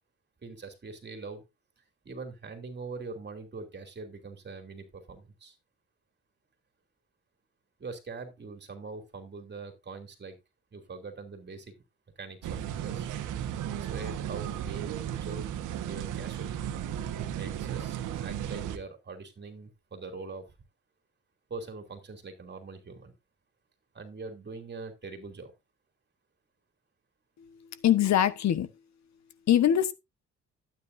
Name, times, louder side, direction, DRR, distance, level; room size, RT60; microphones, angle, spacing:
voice 1, 0.4-1.4 1.8-5.6 7.8-10.4 10.7-11.7 12.2-13.1 13.8-15.6 15.9-16.6 17.4-20.5 21.5-23.1 23.9-25.5, right 4 dB, 35° right, 2.9 m, -43 dB
sound 1, 12.4-18.8, right 10 dB, 85° right, 1.3 m, -35 dB
voice 2, 27.8-28.7 29.5-29.9, left 10 dB, 65° left, 1.2 m, -23 dB
12.5 x 9.2 x 2.6 m
cardioid pair, 90°, 30 cm